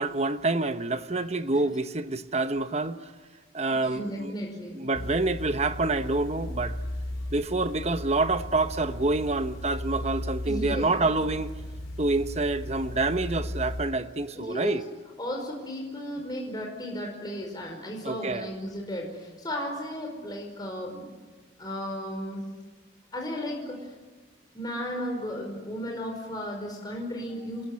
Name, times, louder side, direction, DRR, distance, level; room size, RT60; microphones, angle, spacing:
voice 1, 0.0-3.1 3.5-4.3 4.7-6.8 7.3-11.5 12.0-14.8 18.0-18.5, right 2 dB, 35° right, 1.0 m, -27 dB
voice 2, 3.6-4.8 10.4-10.9 14.3-14.8 15.2-21.1 21.6-22.4 23.1-23.9 24.5-27.7, equal, 20° left, 5.0 m, -35 dB
sound 1, 4.9-13.9, left 1 dB, 85° left, 4.5 m, -36 dB
27.5 x 22.0 x 9.7 m
head